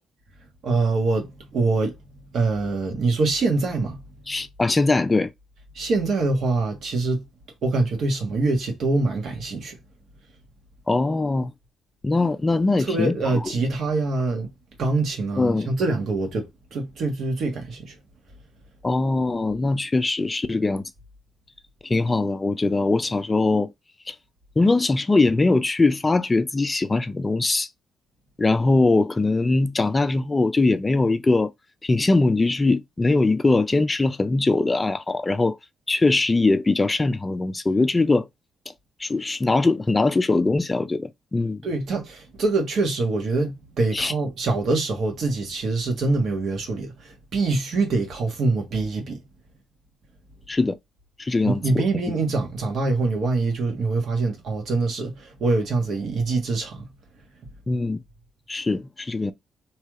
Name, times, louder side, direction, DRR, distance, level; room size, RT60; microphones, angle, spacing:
voice 1, 0.6-1.9 2.3-4.0 5.7-7.2 7.6-9.7 12.8-14.5 14.8-17.9 41.6-49.2 51.4-56.9, right 3 dB, 65° right, 1.4 m, -24 dB
voice 2, 4.3-5.3 10.9-11.5 12.0-13.5 15.4-15.7 18.8-20.8 21.8-23.7 24.1-24.2 24.6-27.7 28.4-31.5 31.8-35.6 35.9-38.3 39.0-41.6 43.9-44.1 50.5-50.8 51.2-51.8 57.7-58.0 58.5-59.3, left 3 dB, 20° left, 0.4 m, -21 dB
3.2 x 3.1 x 2.4 m
cardioid pair, 90°, 0 cm